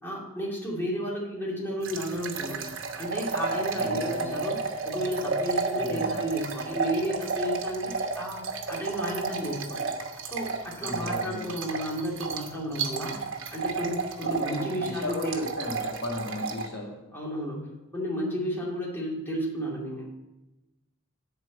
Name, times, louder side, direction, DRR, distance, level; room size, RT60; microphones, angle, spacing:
voice 1, 0.0-2.6 3.0-4.6 4.8-9.9 10.2-13.1 13.5-15.4 17.1-20.1, equal, 10° left, -4 dB, 2.5 m, -32 dB
sound 1, 1.8-16.7, right 4 dB, 60° right, 1.2 m, -32 dB
voice 2, 3.7-4.4 5.8-6.2 10.8-11.5 14.2-16.9, left 2 dB, 50° left, -3 dB, 1.9 m, -36 dB
10.5 x 4.5 x 8.0 m, 1.0 s
head